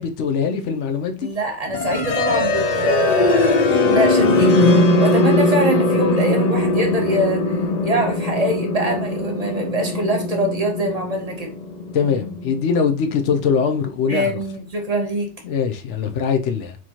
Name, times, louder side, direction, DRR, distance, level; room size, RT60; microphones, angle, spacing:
voice 1, 0.0-1.3 11.9-14.4 15.4-16.8, left 6 dB, 90° left, 0.9 m, -22 dB
voice 2, 1.2-4.5 5.0-7.4 7.8-11.5 14.1-15.3, right 1 dB, 40° right, 0.7 m, -23 dB
sound 1, 1.7-13.6, left 2 dB, 60° left, 0.4 m, -20 dB
4.4 x 3.0 x 2.8 m
omnidirectional pair, 1.2 m